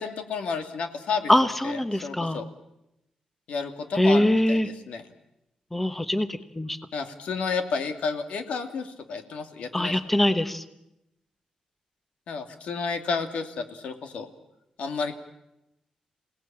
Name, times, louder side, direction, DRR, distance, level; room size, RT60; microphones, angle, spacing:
voice 1, 0.0-1.3 1.6-2.5 3.5-5.0 6.9-9.9 12.3-14.3 14.8-15.2, left 5 dB, 80° left, 7 dB, 2.5 m, -31 dB
voice 2, 1.3-2.4 3.9-4.7 5.7-6.8 9.7-10.6, left 1 dB, 10° left, 10 dB, 1.1 m, -23 dB
28.0 x 18.0 x 8.8 m, 0.89 s
wide cardioid pair, 135°, 2 cm